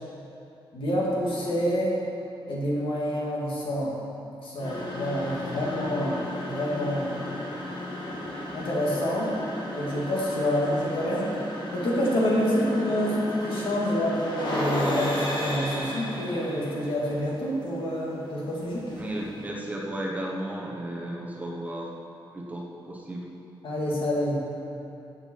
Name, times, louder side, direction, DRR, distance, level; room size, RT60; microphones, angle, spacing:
voice 1, 0.7-2.0 2.5-4.0 4.4-7.4 8.5-9.3 9.8-11.3 11.7-18.8 23.6-24.4, equal, 70° left, -4 dB, 2.5 m, -27 dB
sound 1, 4.6-19.5, left 1 dB, 55° left, 2.1 m, -34 dB
voice 2, 19.0-21.9 22.3-23.3, right 1 dB, 15° right, -2 dB, 1.1 m, -34 dB
14.0 x 7.7 x 4.7 m, 2.9 s
wide cardioid pair, 180°, 9 cm